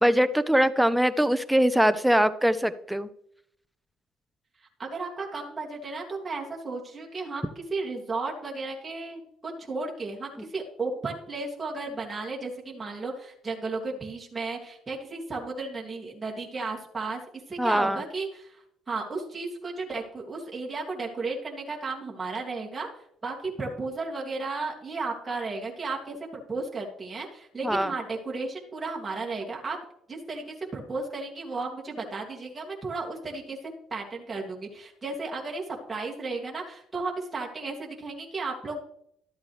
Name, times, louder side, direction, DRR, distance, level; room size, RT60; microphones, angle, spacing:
voice 1, 0.0-3.1 17.6-18.0 27.6-27.9, equal, 5° right, 13 dB, 0.7 m, -22 dB
voice 2, 4.8-17.2 17.5-22.9 23.2-26.2 26.5-29.8 30.1-33.6 33.9-38.8, right 3 dB, 20° right, -2 dB, 2.4 m, -34 dB
13.0 x 8.2 x 3.3 m, 0.70 s
supercardioid pair, 85°, 0 cm